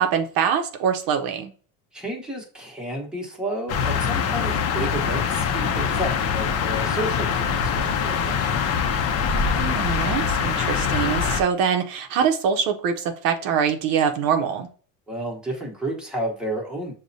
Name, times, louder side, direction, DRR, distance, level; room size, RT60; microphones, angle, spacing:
voice 1, 0.0-1.5 9.4-14.7, right 7 dB, 65° right, 5 dB, 0.6 m, -24 dB
voice 2, 1.9-8.4 15.1-16.9, right 1 dB, ahead, -1 dB, 1.0 m, -31 dB
sound 1, 3.7-11.4, left 6 dB, 40° left, 0.5 m, -23 dB
6.1 x 2.1 x 2.6 m, 0.41 s
cardioid pair, 120°, 37 cm